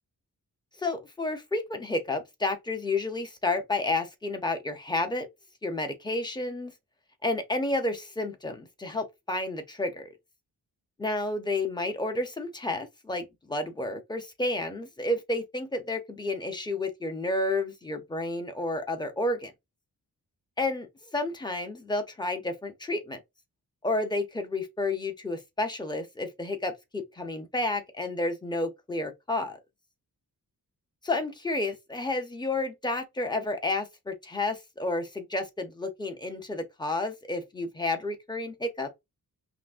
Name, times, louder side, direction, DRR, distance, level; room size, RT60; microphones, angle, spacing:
voice 1, 0.8-5.3 5.6-6.7 7.2-10.1 11.0-19.5 20.6-23.2 23.8-29.6 31.0-38.9, left 2 dB, 10° left, 0.6 m, -31 dB
5.8 x 2.1 x 2.5 m
wide cardioid pair, 155°, 38 cm